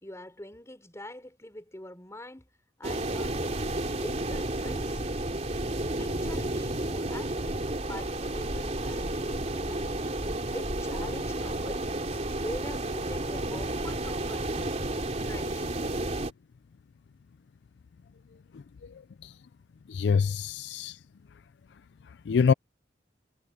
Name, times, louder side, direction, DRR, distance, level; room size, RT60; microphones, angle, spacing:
voice 1, 0.0-2.5 2.8-3.4 4.0-5.0 6.0-7.6 7.9-10.1 10.5-14.8 15.2-15.8, left 1 dB, 15° left, 4.8 m, -44 dB
sound 1, 2.8-16.3, right 1 dB, 40° right, 3.0 m, -31 dB
voice 2, 19.9-20.9 22.3-22.5, left 6 dB, 70° left, 0.4 m, -24 dB
head